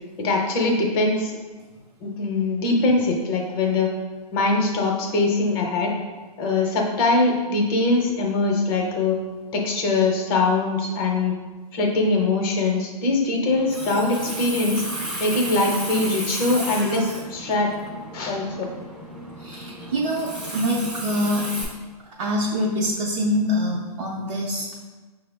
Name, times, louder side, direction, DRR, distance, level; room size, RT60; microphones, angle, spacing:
voice 1, 0.2-1.4 2.0-3.9 4.3-5.9 6.4-9.2 9.5-11.3 11.7-14.8 15.2-17.7 18.1-18.7, left 3 dB, 35° left, 0 dB, 0.7 m, -22 dB
Water tap faucet, 13.5-21.6, equal, 5° right, 0.3 m, -33 dB
voice 2, 19.4-21.5 22.2-24.7, equal, 50° right, -4 dB, 0.6 m, -25 dB
5.6 x 2.0 x 3.4 m, 1.3 s
hypercardioid pair, 150°, 20 cm